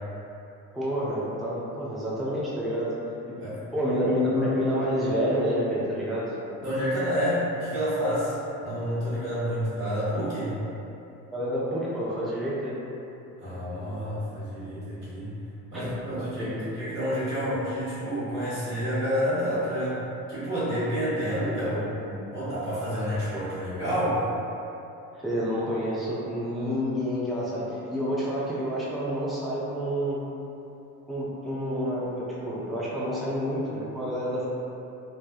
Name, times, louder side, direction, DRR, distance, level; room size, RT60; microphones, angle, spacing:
voice 1, 0.7-2.9 3.3-3.4 3.7-6.4 11.3-12.8 15.7-16.7 21.7-21.8 22.0-22.2 25.1-30.2 31.1-34.5, equal, ahead, -8 dB, 0.5 m, -29 dB
voice 2, 6.6-8.4 8.6-10.6 13.4-15.3 15.7-20.0 20.3-21.8 22.3-24.2, equal, 90° right, -13 dB, 1.0 m, -29 dB
3.3 x 2.1 x 2.3 m, 2.9 s
figure-of-eight pair, 55°, 45 cm